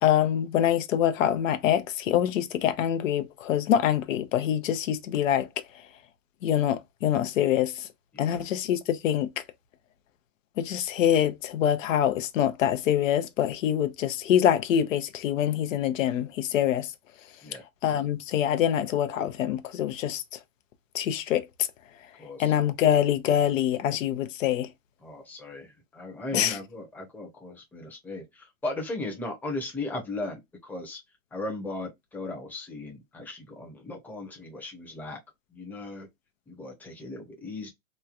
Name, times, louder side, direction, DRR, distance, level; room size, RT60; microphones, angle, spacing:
voice 1, 0.0-5.5 6.4-7.9 8.2-9.4 10.6-16.9 17.8-20.4 20.9-21.5 22.4-24.7 26.3-26.6, left 10 dB, 70° left, 0.6 m, -25 dB
voice 2, 22.2-22.5 25.0-31.0 31.3-35.2 35.5-36.1 36.5-37.7, left 2 dB, 5° left, 0.7 m, -37 dB
3.1 x 2.2 x 2.4 m
hypercardioid pair, 135°, 40 cm